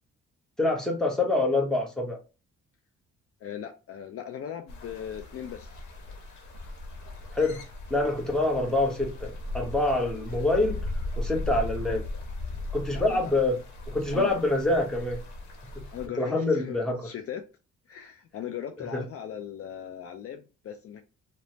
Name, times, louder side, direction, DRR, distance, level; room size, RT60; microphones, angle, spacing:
voice 1, 0.6-2.2 7.3-7.6 7.9-10.8 11.2-12.0 12.7-13.6 13.9-15.2 16.2-17.1 18.9-19.0, left 2 dB, ahead, 0.9 m, -26 dB
voice 2, 3.4-5.8 12.9-13.3 14.1-14.3 15.9-17.4 17.9-21.0, left 9 dB, 50° left, 0.4 m, -38 dB
sound 1, 4.7-16.1, left 2 dB, 70° left, 0.9 m, -37 dB
3.1 x 2.0 x 2.7 m
cardioid pair, 90°, 30 cm